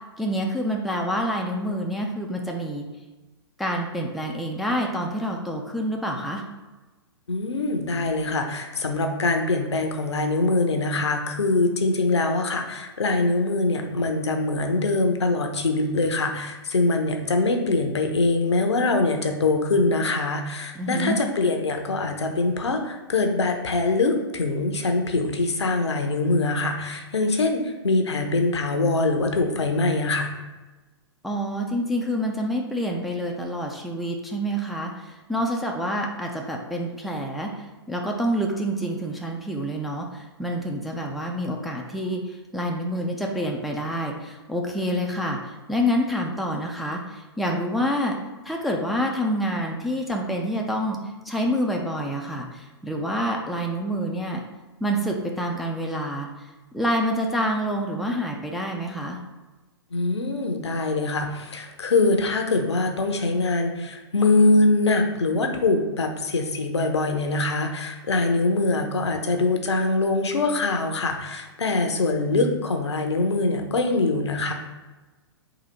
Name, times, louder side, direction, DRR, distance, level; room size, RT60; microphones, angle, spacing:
voice 1, 0.0-2.9 3.6-6.5 20.8-21.2 31.2-48.2 48.4-51.0 51.3-54.4 54.8-56.5 56.7-59.2, equal, ahead, 0 dB, 0.4 m, -27 dB
voice 2, 7.3-30.3 59.9-74.5, left 3 dB, 75° left, 4 dB, 0.7 m, -23 dB
3.9 x 2.7 x 4.3 m, 1.2 s
figure-of-eight pair, 115°, 14 cm